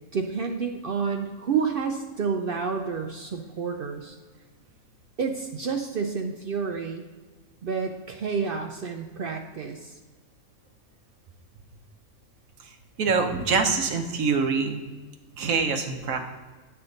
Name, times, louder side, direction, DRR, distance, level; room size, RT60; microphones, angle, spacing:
voice 1, 0.1-4.2 5.2-7.0 7.6-9.9, right 5 dB, 60° right, 4 dB, 0.6 m, -29 dB
voice 2, 13.0-14.8 15.4-16.3, right 5 dB, 75° right, 5 dB, 1.3 m, -25 dB
10.0 x 5.7 x 3.9 m, 1.4 s
omnidirectional pair, 1.4 m